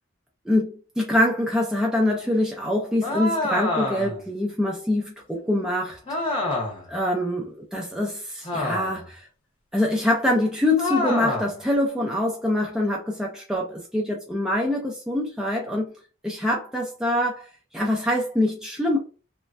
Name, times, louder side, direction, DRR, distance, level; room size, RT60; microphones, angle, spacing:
voice 1, 0.5-6.3 6.9-9.3 9.7-15.9 16.2-19.0, left 1 dB, 5° right, 0.4 m, -24 dB
sound 1, 3.0-4.2 6.1-6.9 8.4-9.1 10.8-11.6, left 2 dB, 25° left, 0.9 m, -27 dB
3.1 x 2.2 x 2.5 m
head